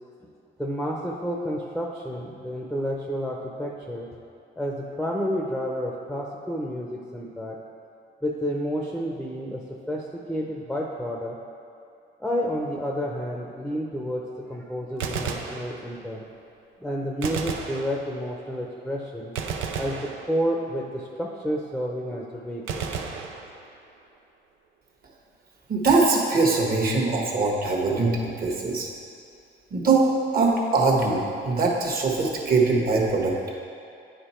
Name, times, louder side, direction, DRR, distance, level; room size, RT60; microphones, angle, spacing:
voice 1, 0.6-4.1 4.6-7.6 8.2-11.4 12.2-14.2 14.5-16.2 16.8-19.3 19.8-22.9, equal, ahead, -1 dB, 0.7 m, -30 dB
Gunshot gunfire, 14.9-16.2 17.2-18.4 19.4-20.8 22.7-24.0, right 6 dB, 90° right, 0.6 m, -33 dB
voice 2, 25.7-28.9 29.7-33.3, right 3 dB, 50° right, -1 dB, 1.4 m, -22 dB
9.2 x 5.0 x 4.4 m, 2.6 s
cardioid pair, 90°, 20 cm